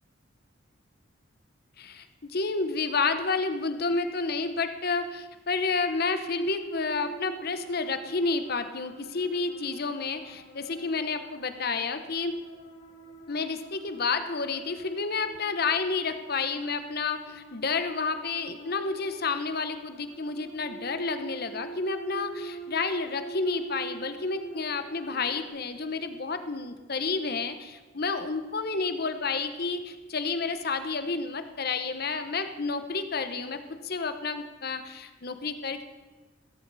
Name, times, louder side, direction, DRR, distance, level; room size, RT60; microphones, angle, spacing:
voice 1, 1.8-12.3 13.3-33.6 33.8-35.8, left 4 dB, 50° left, 9 dB, 0.9 m, -30 dB
sound 1, 6.2-25.5, right 3 dB, 80° left, 3.1 m, -45 dB
15.5 x 14.0 x 4.1 m, 1.2 s
head